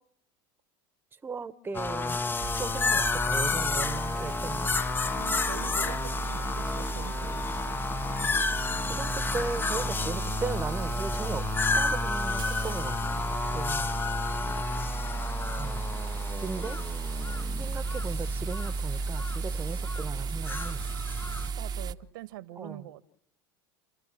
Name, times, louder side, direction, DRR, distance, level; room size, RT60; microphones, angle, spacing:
voice 1, 1.2-2.2 2.6-4.7 8.9-11.5 11.7-13.2 13.5-13.9 15.6-15.8 16.4-16.8 17.6-20.9 22.6-22.9, right 4 dB, 20° right, 1.1 m, -37 dB
sound 1, 1.7-21.5, left 4 dB, 20° left, 0.9 m, -31 dB
sound 2, 2.4-21.9, right 4 dB, 35° right, 0.9 m, -34 dB
voice 2, 5.1-7.8 21.5-23.0, right 15 dB, 75° right, 1.3 m, -44 dB
30.0 x 13.0 x 8.4 m
hypercardioid pair, 95°, 11 cm